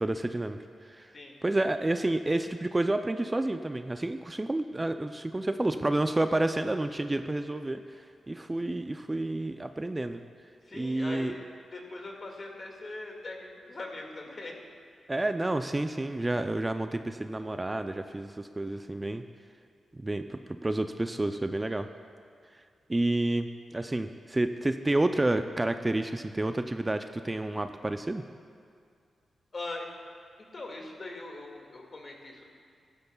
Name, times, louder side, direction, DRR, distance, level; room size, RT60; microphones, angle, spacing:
voice 1, 0.0-1.1 1.4-10.2 10.7-11.3 15.1-19.2 19.9-21.9 22.9-28.2, right 2 dB, 20° right, 8 dB, 0.4 m, -30 dB
voice 2, 10.6-11.5 11.7-14.5 29.5-29.9 30.4-32.4, left 2 dB, 50° left, 0 dB, 2.0 m, -41 dB
15.5 x 12.0 x 2.3 m, 2.2 s
cardioid pair, 65°, 0 cm